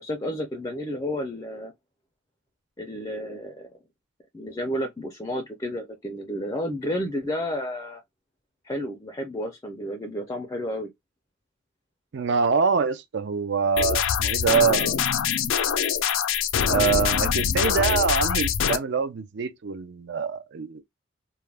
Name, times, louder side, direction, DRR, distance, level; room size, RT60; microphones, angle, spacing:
voice 1, 0.0-1.7 2.8-3.7 4.3-8.0 8.6-10.9, equal, 15° left, 0.4 m, -31 dB
voice 2, 12.1-15.1 16.7-20.8, right 6 dB, 60° right, 0.4 m, -25 dB
sound 1, 13.8-18.8, left 8 dB, 80° left, 0.4 m, -24 dB
2.3 x 2.1 x 3.2 m
head